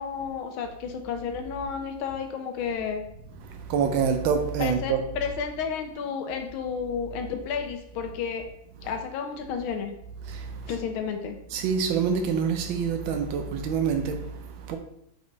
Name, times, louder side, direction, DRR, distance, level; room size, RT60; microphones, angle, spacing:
voice 1, 0.0-3.0 4.6-8.4 8.8-9.9 10.7-11.4, left 6 dB, 85° left, 1.6 m, -31 dB
voice 2, 3.3-5.0 10.2-10.7 11.5-14.8, right 6 dB, 75° right, 1.5 m, -27 dB
5.3 x 4.7 x 4.0 m
omnidirectional pair, 2.2 m